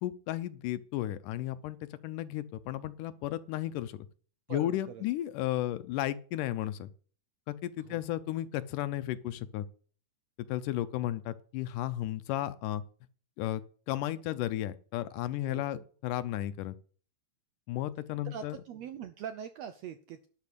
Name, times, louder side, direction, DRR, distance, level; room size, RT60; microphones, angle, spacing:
voice 1, 0.0-1.8 2.0-4.0 4.5-6.9 7.5-9.7 10.5-12.8 13.4-16.7 17.7-18.6, left 13 dB, 80° left, 2.2 m, -34 dB
voice 2, 4.5-5.0 7.8-8.0 15.4-15.8 18.2-20.3, right 8 dB, 85° right, 1.5 m, -43 dB
12.0 x 5.3 x 8.4 m
omnidirectional pair, 3.9 m